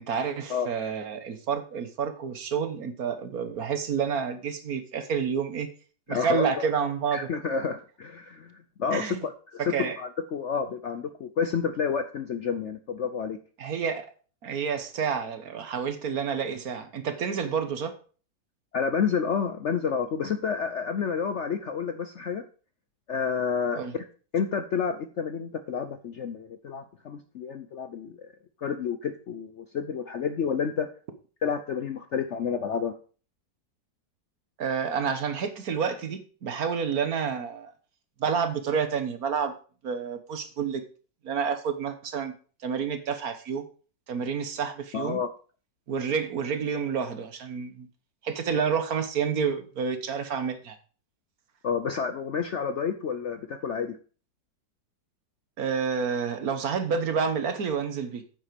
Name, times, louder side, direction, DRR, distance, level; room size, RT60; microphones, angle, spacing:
voice 1, 0.0-5.7 6.1-7.2 8.9-9.2 9.6-10.0 13.6-14.1 14.4-18.0 23.7-23.9 34.6-37.7 38.2-39.5 39.8-40.8 41.2-42.3 42.6-43.6 44.1-45.2 45.9-47.9 48.2-50.8 55.6-58.2, right 6 dB, 60° right, 9 dB, 1.5 m, -29 dB
voice 2, 6.1-6.7 7.1-13.4 18.7-22.4 23.1-24.0 24.3-28.3 28.6-30.9 31.4-32.9 44.9-45.3 51.6-54.0, left 6 dB, 60° left, 9 dB, 0.8 m, -30 dB
9.1 x 7.2 x 5.1 m, 0.40 s
omnidirectional pair, 1.9 m